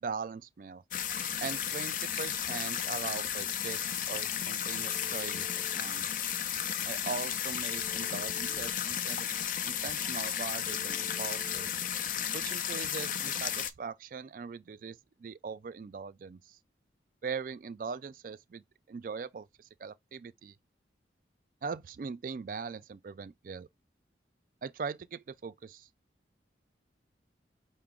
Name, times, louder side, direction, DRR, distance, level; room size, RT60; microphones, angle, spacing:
voice 1, 0.0-0.8 1.4-6.1 6.9-9.3 9.6-11.7 12.3-16.6 17.2-20.5 21.6-23.7 24.6-25.9, right 5 dB, 50° right, 0.3 m, -40 dB
sound 1, 0.9-13.7, left 9 dB, 45° left, 0.3 m, -34 dB
Telephone, 4.8-5.8 7.7-8.7 10.7-11.7, left 1 dB, 15° right, 0.6 m, -51 dB
5.8 x 2.0 x 3.6 m
head